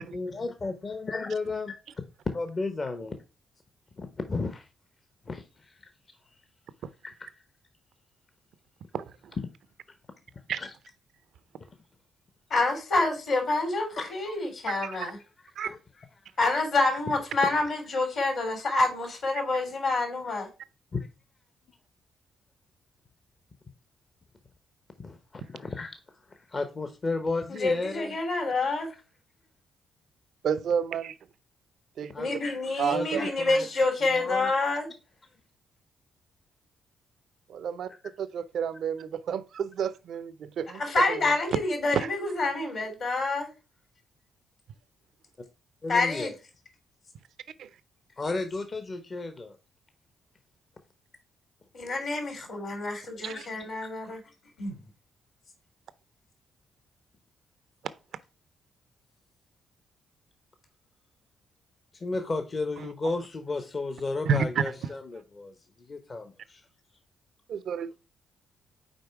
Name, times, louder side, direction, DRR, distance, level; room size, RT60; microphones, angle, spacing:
voice 1, 0.0-1.8 2.3-3.2 4.0-4.7 5.3-5.8 7.0-7.3 10.6-10.7 14.0-14.1 15.6-16.1 20.9-21.1 25.0-25.9 26.3-28.1 32.1-32.3 32.9-33.7 34.1-34.5 45.8-46.3 48.2-49.6 53.8-53.9 61.9-65.5 65.9-66.6, left 3 dB, 40° left, 0.7 m, -33 dB
voice 2, 12.5-15.2 16.4-20.5 27.5-28.9 32.2-34.9 40.8-43.5 45.9-46.3 51.7-54.2 54.6-54.7, left 3 dB, 65° left, 3.0 m, -27 dB
voice 3, 14.7-15.1 15.6-15.7 30.4-31.1 32.0-32.1 32.8-33.2 37.5-37.9 38.2-40.8 41.1-41.3 41.9-42.1 42.6-42.7 47.6-47.7 53.2-53.4 62.8-62.9 64.2-64.6 67.5-68.1, right 7 dB, 70° right, 0.4 m, -30 dB
5.2 x 4.3 x 4.6 m
hypercardioid pair, 45°, 0 cm